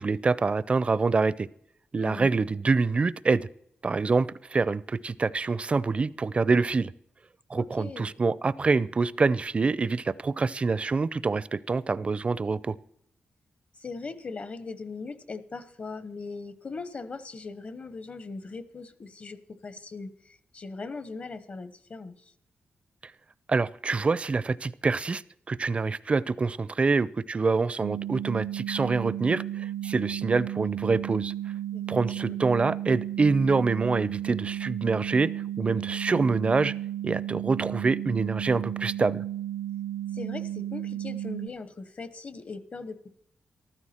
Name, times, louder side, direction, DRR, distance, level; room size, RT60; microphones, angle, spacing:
voice 1, 0.0-1.5 1.9-3.5 3.8-6.9 7.5-12.8 23.5-25.2 25.5-31.3 31.9-36.7 37.0-39.2, right 4 dB, 35° right, 19 dB, 0.5 m, -26 dB
voice 2, 2.0-2.3 7.5-8.1 13.8-22.2 31.7-31.8 32.3-32.4 40.1-43.1, left 4 dB, 45° left, 14 dB, 1.0 m, -39 dB
sound 1, 27.8-41.5, right 12 dB, 90° right, 0.6 m, -34 dB
14.5 x 12.5 x 4.4 m, 0.71 s
cardioid pair, 95°, 4 cm